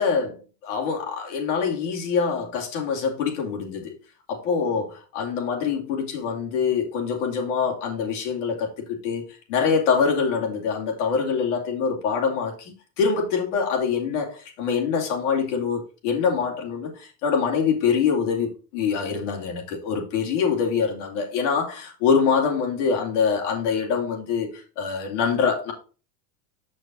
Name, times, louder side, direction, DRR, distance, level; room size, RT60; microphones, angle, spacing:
voice 1, 0.0-4.0 4.3-4.9 5.1-9.2 9.5-25.7, left 6 dB, 50° left, 2.7 m, -24 dB
7.5 x 6.3 x 3.8 m
supercardioid pair, 175°, 45 cm